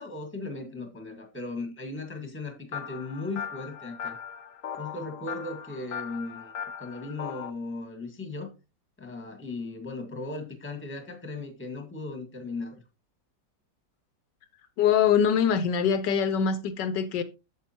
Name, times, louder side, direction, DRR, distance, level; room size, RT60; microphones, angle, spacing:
voice 1, 0.0-4.2 4.8-6.5 6.8-8.5 9.0-12.8, left 3 dB, 5° left, 1.4 m, -37 dB
sound 1, 2.7-7.5, left 7 dB, 60° left, 0.9 m, -38 dB
voice 2, 14.8-17.2, left 7 dB, 80° left, 1.3 m, -23 dB
8.5 x 6.9 x 2.9 m
omnidirectional pair, 1.9 m